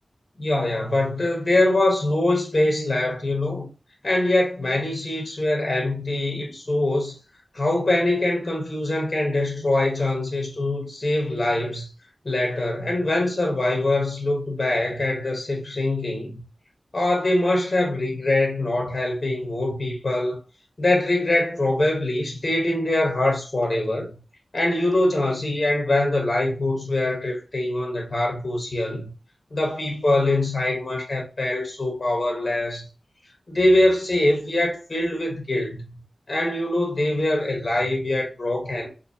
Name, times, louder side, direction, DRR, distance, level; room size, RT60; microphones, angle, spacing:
voice 1, 0.4-3.7 4.0-7.1 7.5-11.9 12.2-16.4 16.9-20.4 20.8-24.2 24.5-29.1 29.5-32.9 33.5-35.9 36.3-38.9, left 1 dB, 40° left, 1.1 m, -23 dB
4.0 x 2.7 x 2.7 m
wide cardioid pair, 70°, 0 cm